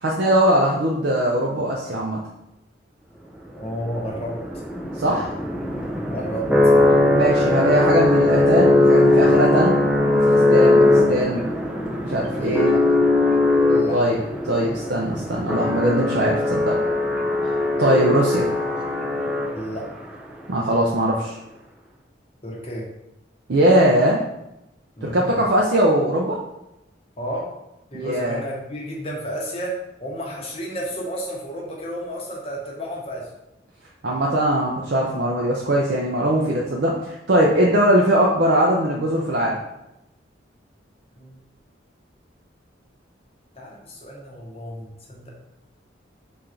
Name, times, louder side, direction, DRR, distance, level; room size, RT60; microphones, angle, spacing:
voice 1, 0.0-2.2 5.0-5.3 7.1-9.8 10.5-11.5 12.0-12.7 13.9-16.8 17.8-18.5 20.5-21.4 23.5-24.2 25.0-26.4 27.9-28.4 34.0-39.6, right 1 dB, 60° right, -2 dB, 0.5 m, -20 dB
voice 2, 3.6-4.4 6.1-6.5 12.3-12.8 13.7-14.0 19.5-19.9 22.4-22.9 25.0-25.4 27.2-27.5 27.9-33.3 41.2-41.4 43.6-45.3, equal, 30° left, -3 dB, 0.9 m, -32 dB
sound 1, 3.7-19.9, left 2 dB, 5° right, 0.4 m, -19 dB
3.8 x 2.5 x 4.4 m, 0.89 s
head